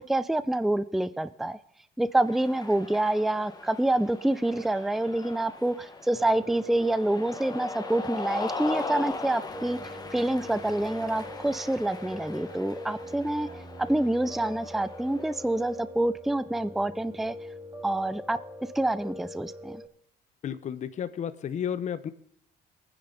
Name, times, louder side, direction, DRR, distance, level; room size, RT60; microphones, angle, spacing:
voice 1, 0.0-1.6 2.0-9.8 10.1-13.5 13.8-17.3 17.8-18.4 18.7-19.8, right 1 dB, ahead, 15 dB, 0.5 m, -27 dB
Cheering, 2.2-15.6, left 3 dB, 25° left, 1.5 m, -40 dB
Piano, 6.1-19.9, left 1 dB, 15° right, 2.2 m, -42 dB
voice 2, 20.4-22.1, left 8 dB, 45° left, 13 dB, 0.8 m, -32 dB
23.0 x 9.8 x 4.0 m, 0.63 s
cardioid pair, 110°, 17 cm